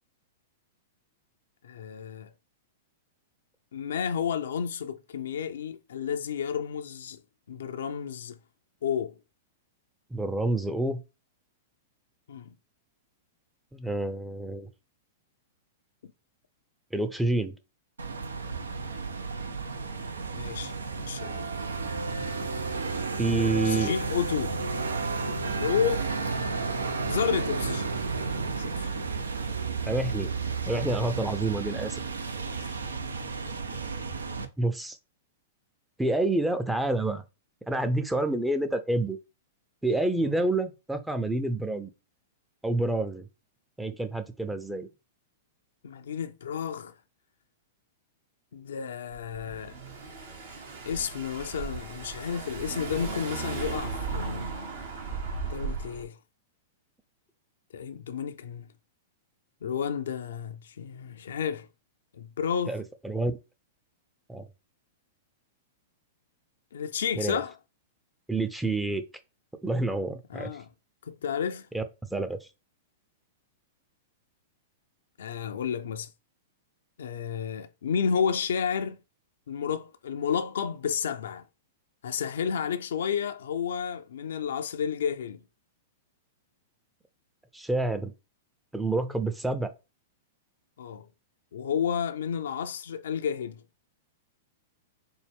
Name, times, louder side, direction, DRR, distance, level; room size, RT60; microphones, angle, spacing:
voice 1, 1.6-2.3 3.7-7.2 7.5-8.4 8.8-9.2 12.3-12.5 16.0-16.1 20.3-21.5 23.3-24.6 25.5-26.1 27.1-27.9 28.5-29.1 32.6-32.8 45.8-46.9 48.5-49.7 50.9-54.5 55.4-56.2 57.7-58.7 59.6-61.7 62.1-62.8 66.7-67.5 70.3-70.7 71.0-71.7 75.2-76.1 77.0-79.0 79.5-81.4 82.0-85.4 90.8-91.1 91.5-93.6, left 7 dB, 70° left, 0.4 m, -31 dB
voice 2, 10.1-11.0 13.7-14.7 16.9-17.6 23.2-23.9 29.9-30.3 30.7-32.0 34.6-35.0 36.0-37.2 37.7-39.2 39.8-41.9 42.6-43.3 43.8-44.9 62.7-63.4 64.3-64.5 67.2-67.4 68.3-69.0 69.6-70.5 71.7-71.8 72.1-72.4 87.5-88.1 88.7-89.7, right 2 dB, 5° right, 0.5 m, -28 dB
sound 1, 18.0-34.5, right 4 dB, 80° right, 0.4 m, -32 dB
Car / Engine, 49.1-56.0, right 4 dB, 65° right, 1.1 m, -36 dB
4.3 x 2.1 x 3.4 m
figure-of-eight pair, 105°, 0 cm